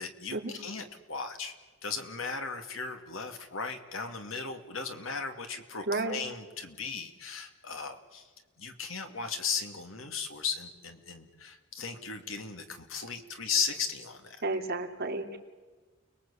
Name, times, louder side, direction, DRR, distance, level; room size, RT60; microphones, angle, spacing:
voice 1, 0.0-1.5 1.8-8.3 8.6-14.4, left 5 dB, 80° left, 6 dB, 2.6 m, -36 dB
voice 2, 5.9-6.2 14.4-15.4, right 2 dB, 50° right, 2 dB, 3.4 m, -32 dB
30.0 x 21.5 x 8.6 m, 1.3 s
head